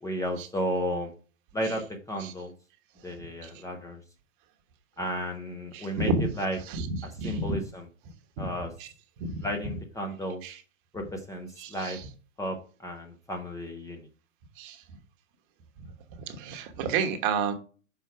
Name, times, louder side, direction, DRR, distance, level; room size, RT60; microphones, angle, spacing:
voice 1, 0.0-1.1 1.5-2.5 3.0-4.0 5.0-6.6 7.0-7.9 8.4-8.7 9.4-10.4 10.9-12.0 12.4-14.1, equal, 10° left, 0.7 m, -33 dB
voice 2, 5.7-6.3 6.7-6.9 7.2-7.6 8.4-8.5 8.8-8.9 9.2-9.4 10.4-10.6 11.6-12.0 14.6-14.8 16.3-17.5, right 4 dB, 40° right, 1.1 m, -30 dB
5.9 x 4.5 x 4.6 m
figure-of-eight pair, 105°, 40 cm